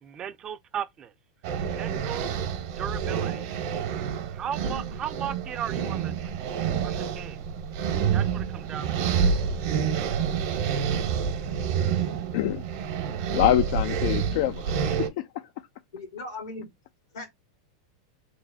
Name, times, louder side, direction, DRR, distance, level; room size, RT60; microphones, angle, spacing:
voice 1, 0.0-1.1 1.7-2.3 2.8-3.5 4.3-6.1 6.8-7.4 8.1-9.2, right 9 dB, 30° right, 0.4 m, -36 dB
sound 1, 1.4-15.1, right 7 dB, 60° right, 0.9 m, -28 dB
voice 2, 12.3-12.7 13.3-15.3, left 13 dB, 65° left, 0.4 m, -25 dB
voice 3, 15.9-16.7 17.1-17.3, left 2 dB, 80° left, 1.8 m, -38 dB
3.3 x 2.0 x 4.0 m
hypercardioid pair, 115°, 2 cm